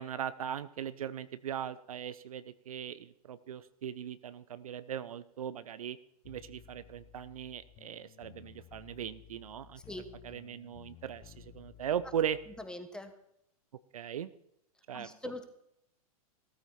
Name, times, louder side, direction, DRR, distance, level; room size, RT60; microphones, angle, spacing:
voice 1, 0.0-6.0 6.3-9.8 10.2-12.4 13.9-14.3 14.9-15.1, right 9 dB, 70° right, 15 dB, 0.7 m, -38 dB
sound 1, 6.2-12.7, left 12 dB, 35° left, 0.9 m, -56 dB
voice 2, 12.6-13.1 14.9-15.4, left 2 dB, 5° left, 7 dB, 1.6 m, -42 dB
16.0 x 13.5 x 4.3 m, 0.76 s
figure-of-eight pair, 105°, 19 cm